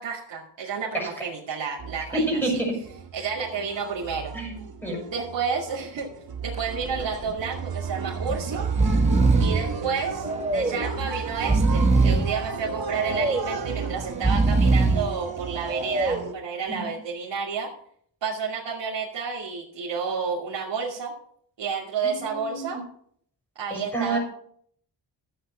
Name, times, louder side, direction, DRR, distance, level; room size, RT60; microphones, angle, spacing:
voice 1, 0.0-2.2 2.5-2.6 3.1-4.3 5.0-6.1 6.4-8.6 9.4-17.7 18.2-21.1 21.6-22.8 23.6-24.2, right 5 dB, 75° right, -6 dB, 2.6 m, -30 dB
sound 1, 1.8-16.3, right 6 dB, 55° right, 1.2 m, -34 dB
voice 2, 2.1-2.7 4.3-4.6 4.8-5.0 10.6-10.8 16.7-16.9 22.0-22.8 23.7-24.2, right 2 dB, 5° left, -1 dB, 6.4 m, -28 dB
Breathing, 6.5-6.9 7.2-7.3 8.2-8.4 8.6-9.7 10.2-10.9 11.3-12.4 12.9-13.6 14.1-15.1 15.7-16.3, right 3 dB, 15° right, 1.2 m, -22 dB
13.5 x 8.8 x 5.1 m, 0.64 s
wide cardioid pair, 140°, 44 cm